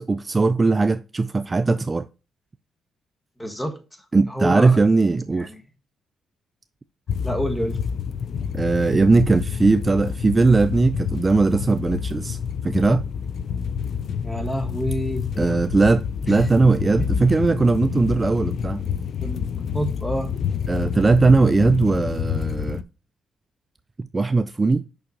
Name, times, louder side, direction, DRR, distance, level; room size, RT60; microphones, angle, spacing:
voice 1, 0.0-2.1 4.1-5.5 8.5-12.4 12.6-13.0 15.4-18.8 20.7-22.8 24.0-24.9, right 3 dB, 25° right, 0.3 m, -19 dB
voice 2, 3.4-3.8 4.3-4.8 5.3-5.6 7.2-7.8 14.2-15.6 16.3-16.4 19.2-20.3, equal, 10° left, 1.3 m, -28 dB
sound 1, 7.1-22.8, left 7 dB, 60° left, 0.4 m, -28 dB
7.0 x 5.7 x 2.5 m
cardioid pair, 90°, 0 cm